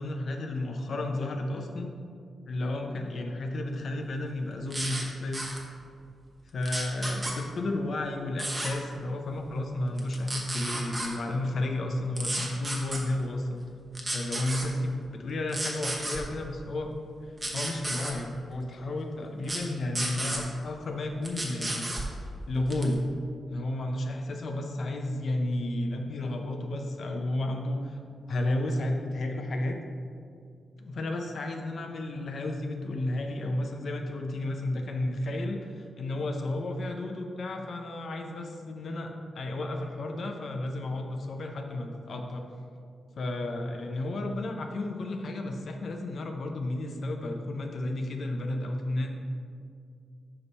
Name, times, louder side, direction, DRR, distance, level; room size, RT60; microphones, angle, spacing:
voice 1, 0.0-1.9 2.5-5.4 6.5-13.6 14.1-16.9 17.2-21.9 22.2-23.0 23.5-28.0 28.3-29.8 30.8-42.5 43.1-49.1, left 1 dB, 60° left, 3 dB, 0.6 m, -32 dB
sound 1, 4.7-5.0 5.3-5.6 6.6-7.3 8.4-8.7 10.0-11.1 12.2-13.0 13.9-14.7 15.5-16.2 17.4-18.1 19.4-19.6 19.9-20.4 21.2-22.1 22.7-22.9, right 1 dB, 25° right, 1.0 m, -32 dB
5.7 x 5.3 x 4.1 m, 2.3 s
wide cardioid pair, 120°, 0 cm